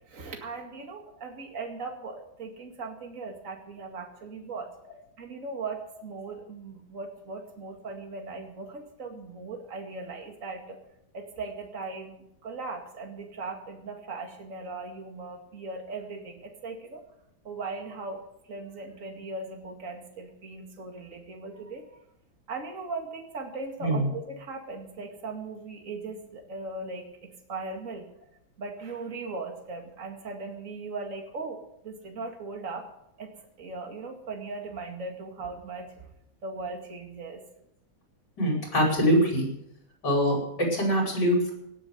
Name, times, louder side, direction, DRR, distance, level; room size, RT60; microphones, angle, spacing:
voice 1, 0.1-4.7 5.2-10.8 11.1-17.0 17.4-18.2 18.5-21.9 22.5-28.1 28.6-32.9 33.2-36.1 36.4-37.4, right 3 dB, 40° right, 3 dB, 2.4 m, -38 dB
voice 2, 38.4-39.5 40.0-41.5, equal, 55° left, 0 dB, 5.8 m, -24 dB
18.0 x 7.5 x 8.0 m, 0.78 s
omnidirectional pair, 2.2 m